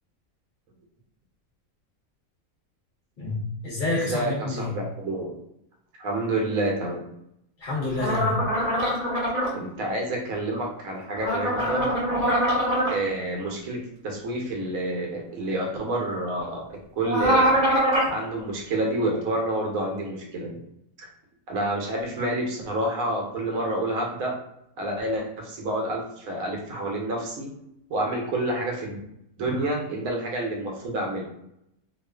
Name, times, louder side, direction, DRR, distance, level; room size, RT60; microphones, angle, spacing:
voice 1, 3.2-4.7 7.6-8.4 29.4-29.5, left 2 dB, 45° left, -5 dB, 0.7 m, -28 dB
voice 2, 4.1-5.4 6.0-7.0 9.5-11.9 12.9-13.8 14.0-17.5 18.1-20.6 21.0-21.1 21.5-24.3 24.8-27.5 27.9-29.0 29.4-31.2, right 1 dB, 80° right, -1 dB, 1.1 m, -28 dB
sound 1, 8.0-9.5 11.2-12.9 17.0-18.1, equal, 35° right, 0.8 m, -23 dB
2.4 x 2.4 x 2.2 m, 0.78 s
omnidirectional pair, 1.5 m